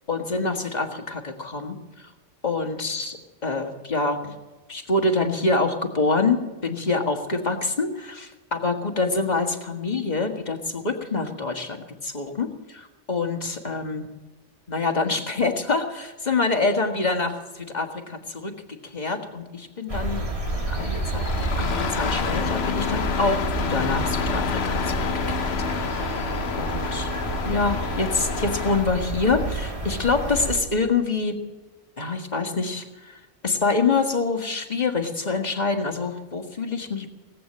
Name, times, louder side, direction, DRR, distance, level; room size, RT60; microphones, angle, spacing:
voice 1, 0.1-2.1 2.4-3.2 3.4-4.3 4.7-11.8 12.0-14.1 14.7-18.5 18.8-20.3 20.7-25.0 25.3-26.3 26.6-27.1 27.5-31.4 32.0-37.1, left 3 dB, 35° left, 4 dB, 1.9 m, -26 dB
sound 1, 19.9-30.6, right 2 dB, 30° right, 2.1 m, -30 dB
Engine starting, 20.8-28.9, left 6 dB, 60° left, 1.1 m, -29 dB
18.5 x 8.9 x 8.7 m, 1.2 s
omnidirectional pair, 1.2 m